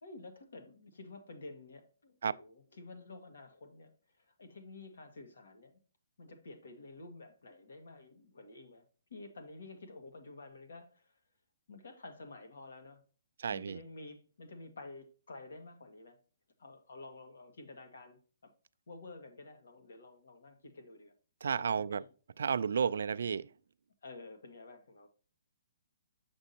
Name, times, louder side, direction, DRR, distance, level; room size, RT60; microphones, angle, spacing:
voice 1, 0.0-5.7 6.2-8.8 9.1-11.2 11.7-13.0 13.5-16.2 16.6-18.5 18.9-21.1 21.6-22.1 22.8-23.1 24.0-25.1, left 2 dB, 70° left, 1.7 m, -51 dB
voice 2, 13.4-13.8 21.4-22.0 22.4-23.5, right 6 dB, 60° right, 0.3 m, -32 dB
8.0 x 6.0 x 2.8 m
hypercardioid pair, 180°, 0 cm